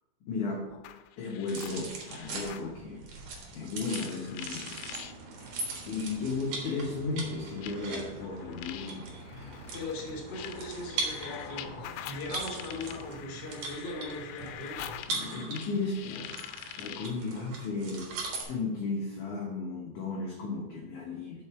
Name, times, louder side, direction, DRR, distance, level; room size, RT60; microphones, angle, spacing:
voice 1, 0.3-0.7 1.2-3.0 3.5-4.8 5.8-9.7 15.1-18.1 18.4-21.4, left 3 dB, 70° left, -2 dB, 1.9 m, -35 dB
sound 1, 0.7-2.7 3.8-5.1 6.2-6.3 7.6-17.2, left 11 dB, 90° left, 2.8 m, -45 dB
sound 2, 1.5-18.4, right 3 dB, 60° right, 2.7 m, -41 dB
sound 3, 4.7-13.2, right 2 dB, 85° right, 1.4 m, -50 dB
voice 2, 9.7-11.8 12.0-14.9, left 2 dB, 35° left, -2 dB, 1.8 m, -39 dB
6.6 x 5.2 x 6.0 m, 1.1 s
omnidirectional pair, 5.0 m